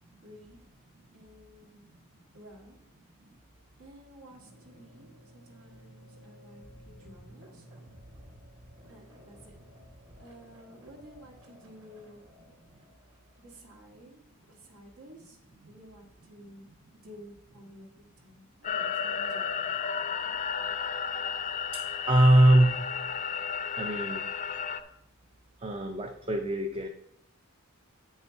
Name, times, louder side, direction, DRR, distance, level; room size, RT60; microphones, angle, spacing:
voice 1, 0.2-0.6 1.1-1.9 2.3-2.8 3.8-5.1 5.3-7.7 8.9-9.5 10.2-12.2 13.4-14.2 14.5-15.4 15.7-16.7 17.0-19.6, equal, 80° right, -1 dB, 1.8 m, -52 dB
sound 1, 4.5-14.1, equal, 60° right, 2.4 m, -54 dB
sound 2, 18.6-24.8, left 7 dB, 35° left, 0.5 m, -33 dB
voice 2, 21.7-22.8 23.8-24.3 25.6-26.9, right 1 dB, 25° right, 4 dB, 0.5 m, -23 dB
8.7 x 5.5 x 4.5 m, 0.78 s
head